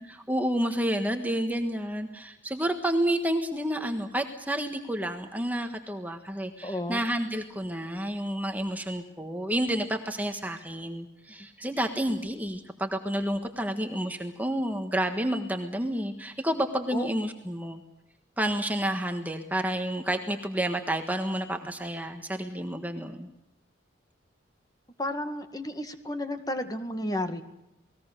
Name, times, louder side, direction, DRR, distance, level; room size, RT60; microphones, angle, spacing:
voice 1, 0.0-17.8 18.4-23.3, right 1 dB, 10° right, 5 dB, 1.5 m, -30 dB
voice 2, 6.6-7.0 16.9-17.1 25.0-27.4, left 1 dB, 20° left, 7 dB, 1.9 m, -32 dB
29.0 x 20.0 x 6.7 m, 0.88 s
head